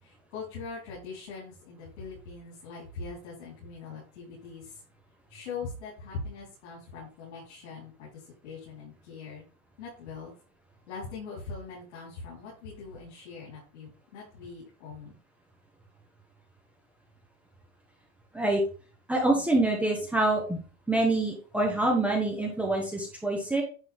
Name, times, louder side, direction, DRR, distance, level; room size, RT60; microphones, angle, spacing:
voice 1, 0.0-4.8 5.3-9.4 9.8-10.3 10.9-15.2, left 4 dB, 90° left, -7 dB, 4.2 m, -42 dB
voice 2, 19.1-20.6 20.9-23.6, right 2 dB, 5° right, -1 dB, 1.1 m, -26 dB
9.9 x 4.0 x 3.6 m, 0.37 s
supercardioid pair, 165°, 33 cm